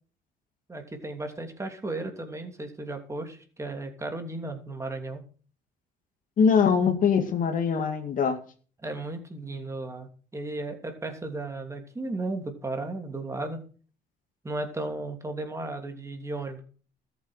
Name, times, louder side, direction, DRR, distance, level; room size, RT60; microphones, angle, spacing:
voice 1, 0.7-5.2 8.8-13.6 14.4-16.6, right 2 dB, 15° right, 5 dB, 2.9 m, -35 dB
voice 2, 6.4-8.4, left 6 dB, 50° left, 7 dB, 2.3 m, -22 dB
13.5 x 8.2 x 6.5 m, 0.41 s
cardioid pair, 110°, 17 cm